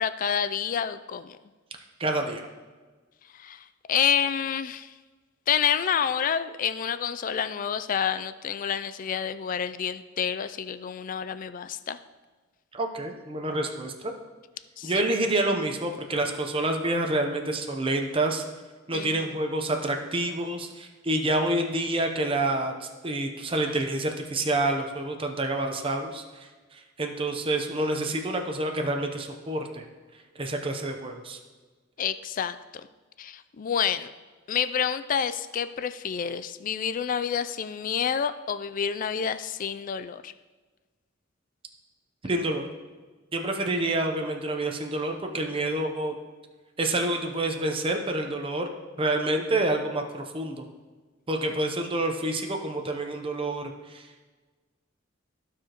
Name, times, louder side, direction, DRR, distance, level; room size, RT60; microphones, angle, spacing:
voice 1, 0.0-1.4 3.3-4.9 5.5-12.0 14.8-14.9 18.9-19.3 32.0-32.9 33.2-34.1 34.5-40.3, left 8 dB, 45° left, 12 dB, 0.3 m, -28 dB
voice 2, 2.0-2.5 12.7-14.1 14.8-18.4 18.9-29.9 30.4-31.4 42.2-42.7 43.3-46.2 46.8-48.7 49.0-50.6 51.3-54.3, right 2 dB, 25° right, 3 dB, 0.7 m, -28 dB
14.5 x 4.9 x 3.0 m, 1.3 s
head